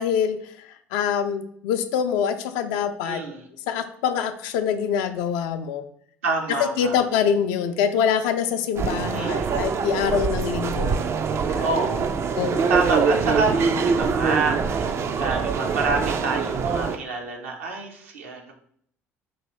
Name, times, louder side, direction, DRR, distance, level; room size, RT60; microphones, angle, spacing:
voice 1, 0.0-3.2 3.7-5.8 6.6-11.0 11.5-11.6 12.3-12.6, left 7 dB, 60° left, 8 dB, 0.4 m, -25 dB
voice 2, 3.0-3.5 6.2-7.0 9.1-9.7 11.6-12.1 12.7-18.5, right 3 dB, 75° right, 1 dB, 0.7 m, -28 dB
sound 1, 8.8-17.0, right 5 dB, 35° right, 0.3 m, -24 dB
4.6 x 2.6 x 3.0 m, 0.64 s
figure-of-eight pair, 55°, 7 cm